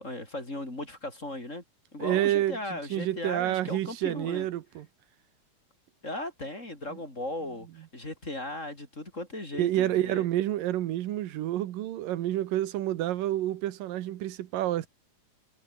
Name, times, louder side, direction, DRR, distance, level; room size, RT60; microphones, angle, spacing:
voice 1, 0.0-1.6 1.9-4.5 6.0-10.2, left 1 dB, 20° left, 5.5 m, -37 dB
voice 2, 2.0-4.9 9.6-14.9, right 13 dB, 85° right, 2.9 m, -29 dB
omnidirectional pair, 3.8 m